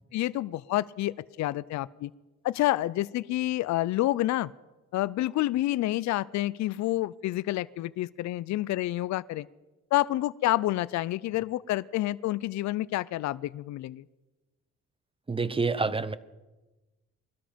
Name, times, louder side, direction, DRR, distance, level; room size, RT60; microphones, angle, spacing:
voice 1, 0.1-2.1 2.4-4.5 4.9-9.5 9.9-14.0, left 15 dB, 65° left, 19 dB, 0.5 m, -28 dB
voice 2, 15.3-16.1, right 4 dB, 20° right, 16 dB, 0.8 m, -27 dB
21.0 x 13.0 x 5.1 m, 1.1 s
cardioid pair, 90°, 30 cm